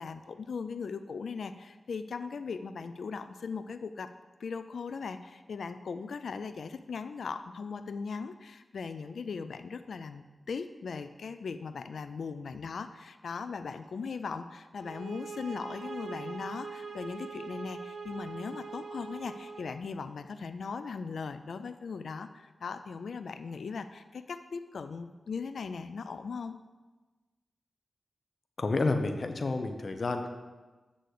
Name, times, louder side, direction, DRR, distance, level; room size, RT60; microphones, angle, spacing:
voice 1, 0.0-4.1 4.4-26.6, left 5 dB, 80° left, 10 dB, 0.3 m, -39 dB
sound 1, 14.8-19.8, right 4 dB, 80° right, 0.9 m, -42 dB
voice 2, 28.6-30.3, left 3 dB, 60° left, 6 dB, 0.7 m, -30 dB
8.2 x 3.8 x 6.6 m, 1.2 s
cardioid pair, 45°, 0 cm